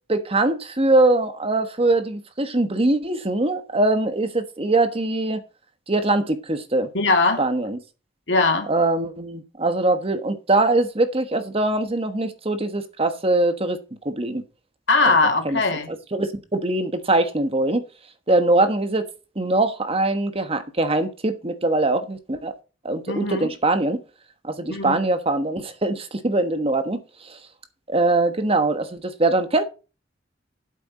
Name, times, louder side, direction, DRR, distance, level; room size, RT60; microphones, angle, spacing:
voice 1, 0.1-5.4 5.9-6.9 7.4-7.8 8.7-13.8 14.0-14.4 15.4-15.6 15.9-17.8 18.3-19.1 19.3-22.5 22.8-24.0 24.4-27.4 27.9-29.6, right 2 dB, 30° right, 1.3 m, -22 dB
voice 2, 6.9-7.4 8.3-8.7 14.9-15.9 23.1-23.5 24.7-25.0, left 3 dB, 70° left, 2.7 m, -20 dB
11.5 x 8.5 x 4.2 m
head